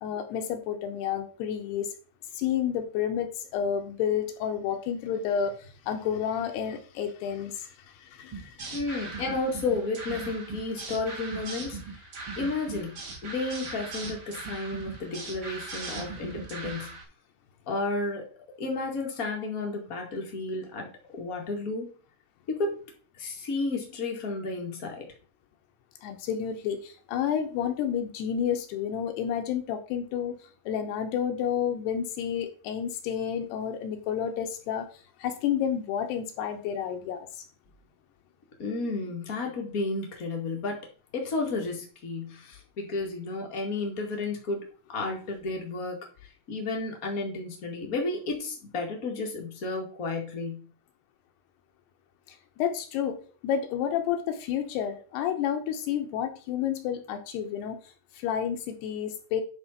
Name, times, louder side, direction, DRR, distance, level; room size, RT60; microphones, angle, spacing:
voice 1, 0.0-1.9 2.3-8.6 26.0-30.4 30.7-34.9 35.2-37.3 52.6-53.2 53.4-57.8 58.2-59.4, left 8 dB, 75° left, 5 dB, 2.8 m, -30 dB
sound 1, 8.3-17.0, right 3 dB, 50° right, 1.5 m, -39 dB
voice 2, 8.7-12.1 12.3-17.0 17.7-18.2 18.6-20.9 21.1-21.9 22.5-22.8 23.2-25.1 38.6-40.8 41.1-44.7 44.9-50.7, left 3 dB, 55° left, 0 dB, 0.9 m, -32 dB
9.9 x 4.1 x 5.6 m, 0.38 s
omnidirectional pair, 5.1 m